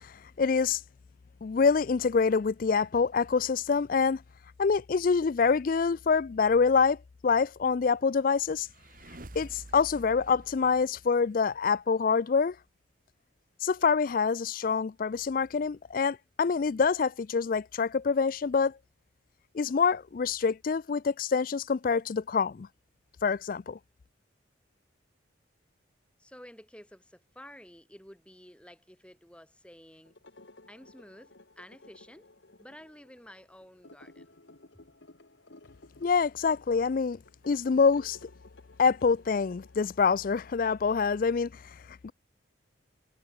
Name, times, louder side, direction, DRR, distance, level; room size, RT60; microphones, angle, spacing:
voice 1, 0.0-0.8 1.4-4.2 4.6-7.0 7.2-8.7 9.4-12.6 13.6-18.8 19.5-22.7 23.2-23.8 36.0-37.2 37.5-38.2 38.8-42.1, left 5 dB, 45° left, 0.4 m, -26 dB
sound 1, 8.1-11.7, right 1 dB, 45° right, 1.7 m, -49 dB
voice 2, 26.2-30.1 30.7-32.3 32.6-34.3, equal, 5° left, 4.3 m, -51 dB
sound 2, 30.0-40.8, left 2 dB, 65° left, 1.8 m, -56 dB
head